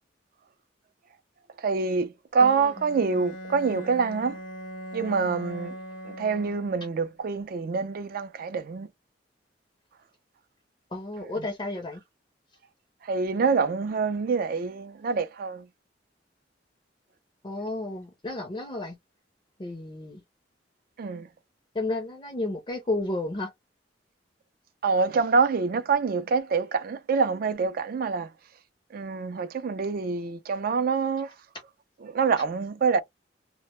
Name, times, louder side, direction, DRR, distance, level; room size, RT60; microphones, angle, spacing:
voice 1, 1.6-4.4 4.9-5.7 6.1-8.9 13.1-15.6 21.0-21.3 24.8-28.3 28.9-31.3 32.1-33.0, right 5 dB, 50° right, 0.4 m, -26 dB
voice 2, 2.4-2.8 10.9-12.0 17.4-19.0 19.6-20.2 21.7-23.5, left 2 dB, 25° left, 0.5 m, -32 dB
Bowed string instrument, 2.6-7.1, equal, 80° left, 0.7 m, -40 dB
2.1 x 2.1 x 2.8 m
head